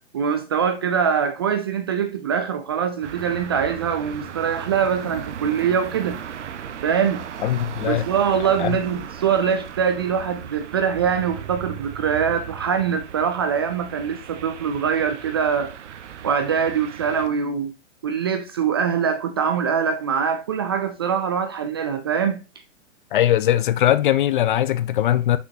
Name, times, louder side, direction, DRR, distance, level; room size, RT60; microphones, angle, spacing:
voice 1, 0.0-6.2 6.8-7.2 7.8-15.7 16.2-17.7 18.0-22.4, right 7 dB, 20° right, 0.3 m, -23 dB
sound 1, 3.0-17.3, right 9 dB, 65° right, 0.8 m, -37 dB
voice 2, 7.4-8.1 8.6-8.8 23.1-25.4, left 12 dB, 45° left, 0.5 m, -20 dB
6.1 x 5.7 x 2.8 m
figure-of-eight pair, 120°, 38 cm